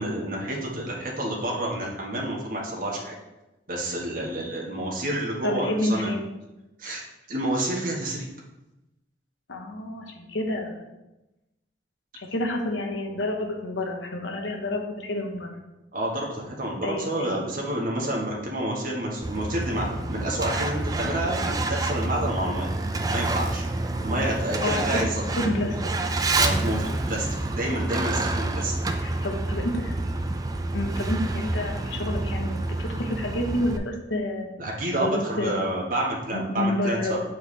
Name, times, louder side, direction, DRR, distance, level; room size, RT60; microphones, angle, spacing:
voice 1, 0.0-3.1 3.7-6.1 6.8-7.0 7.3-8.3 15.9-22.7 23.1-23.6 24.0-25.2 26.4-27.3 27.6-28.8 34.6-37.2, right 1 dB, 50° right, -3 dB, 1.3 m, -29 dB
voice 2, 5.4-6.2 9.5-10.8 12.2-15.5 16.8-17.4 24.6-25.8 29.0-29.9 30.7-35.9 36.3-37.3, left 1 dB, 90° left, 2 dB, 1.0 m, -29 dB
Truck, 19.2-33.8, right 2 dB, 20° right, 0.3 m, -28 dB
7.1 x 4.6 x 3.3 m, 0.99 s
head